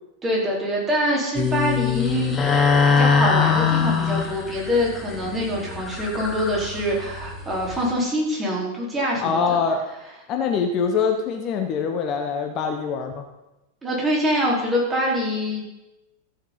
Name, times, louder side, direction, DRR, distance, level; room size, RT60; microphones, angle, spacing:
voice 1, 0.2-2.3 2.7-9.6 13.8-15.6, equal, 15° right, -4 dB, 4.6 m, -24 dB
sound 1, 1.4-7.9, left 5 dB, 20° left, 1.7 m, -23 dB
voice 2, 9.2-9.8 10.3-13.2, left 5 dB, 35° left, 4 dB, 1.2 m, -24 dB
14.5 x 7.3 x 5.6 m, 0.96 s
figure-of-eight pair, 90°, 0 cm